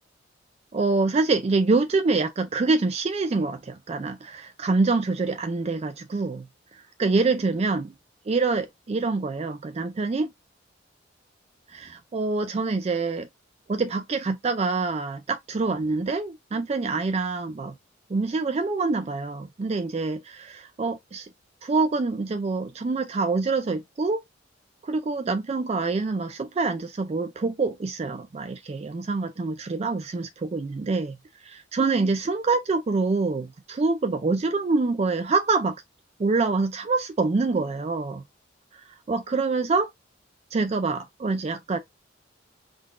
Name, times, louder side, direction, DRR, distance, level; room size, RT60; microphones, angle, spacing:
voice 1, 0.7-6.5 7.0-7.9 8.3-10.3 11.7-13.3 13.7-17.7 18.1-21.3 21.6-24.2 24.8-31.2 31.4-35.8 36.2-38.2 39.1-39.9 40.5-41.8, right 3 dB, 35° right, 0.3 m, -26 dB
3.8 x 2.3 x 3.6 m
head